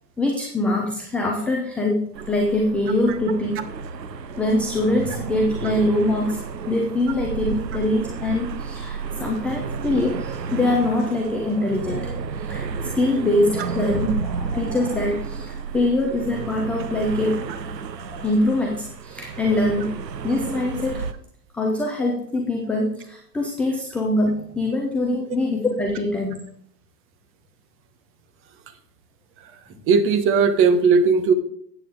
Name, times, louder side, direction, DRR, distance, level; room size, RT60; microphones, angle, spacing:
voice 1, 0.2-2.0 2.3-3.6 4.3-17.7 18.0-19.9 20.2-21.1 21.5-26.4, left 1 dB, 5° left, 0 dB, 0.4 m, -23 dB
sound 1, 2.1-21.1, right 5 dB, 85° right, 0.9 m, -32 dB
voice 2, 29.9-31.3, right 5 dB, 25° right, 10 dB, 1.1 m, -17 dB
13.5 x 8.6 x 3.5 m, 0.65 s
hypercardioid pair, 110°, 49 cm